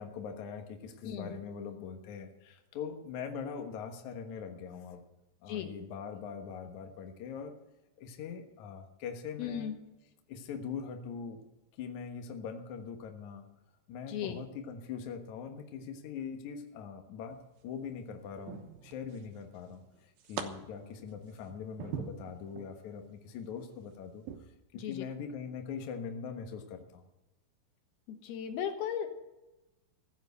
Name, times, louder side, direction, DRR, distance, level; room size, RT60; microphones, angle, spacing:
voice 1, 0.0-5.0 5.4-7.5 8.0-9.7 10.3-11.4 11.8-13.5 13.9-17.4 17.6-27.0, left 6 dB, 90° left, 4 dB, 1.6 m, -42 dB
voice 2, 1.0-1.3 5.5-5.7 9.4-9.8 14.1-14.4 24.7-25.0 28.1-29.1, left 9 dB, 70° left, 6 dB, 2.6 m, -36 dB
sound 1, 17.3-17.8 18.5-19.4 19.7-20.4 20.9-22.7 23.2-23.5 24.2-24.4, right 9 dB, 75° right, 2.2 m, -42 dB
15.0 x 8.1 x 8.0 m, 1.0 s
omnidirectional pair, 5.7 m